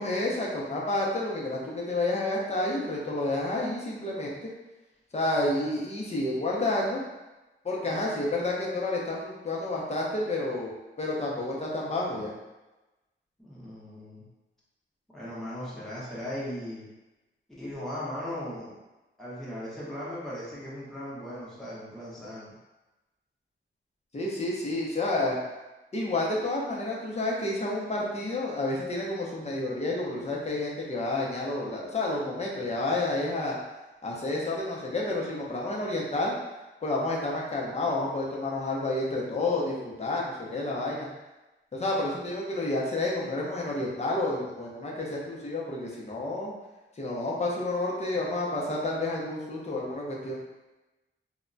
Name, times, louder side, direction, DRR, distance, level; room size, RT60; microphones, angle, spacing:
voice 1, 0.0-4.5 5.1-7.0 7.6-12.3 24.1-25.4 25.9-33.6 34.0-36.3 36.8-41.1 41.7-46.5 47.0-50.4, left 2 dB, 30° left, -3 dB, 0.6 m, -30 dB
voice 2, 13.4-14.2 15.1-16.9 17.6-18.7 19.2-22.5, left 1 dB, ahead, -9 dB, 0.9 m, -38 dB
2.2 x 2.1 x 3.7 m, 1.1 s
wide cardioid pair, 140°, 21 cm